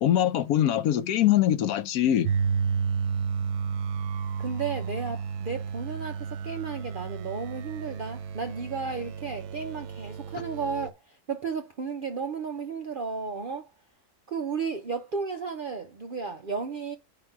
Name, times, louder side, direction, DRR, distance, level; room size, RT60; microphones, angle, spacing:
voice 1, 0.0-2.3, left 11 dB, 75° left, 1.1 m, -23 dB
sound 1, 2.2-10.9, right 6 dB, 85° right, 1.2 m, -32 dB
voice 2, 4.4-13.7 14.3-17.0, right 5 dB, 60° right, 0.5 m, -33 dB
5.2 x 3.9 x 5.8 m
omnidirectional pair, 1.6 m